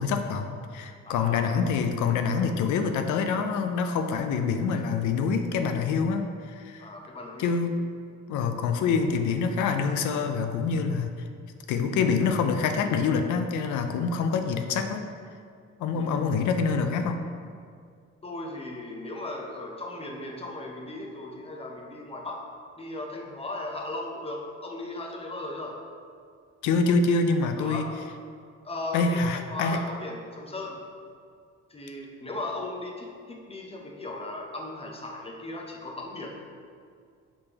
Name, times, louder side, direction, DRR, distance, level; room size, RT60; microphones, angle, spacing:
voice 1, 0.0-6.9 7.4-7.7 8.3-11.3 11.7-15.1 15.8-17.2 26.6-27.8 28.9-29.8, left 5 dB, 75° left, 6 dB, 0.5 m, -26 dB
voice 2, 1.0-1.4 6.8-7.5 15.9-16.1 18.2-22.4 22.8-25.8 27.6-27.9 28.6-30.8 31.7-36.3, left 2 dB, 20° left, 0 dB, 0.7 m, -37 dB
5.2 x 3.3 x 2.9 m, 2.2 s
cardioid pair, 90°, 30 cm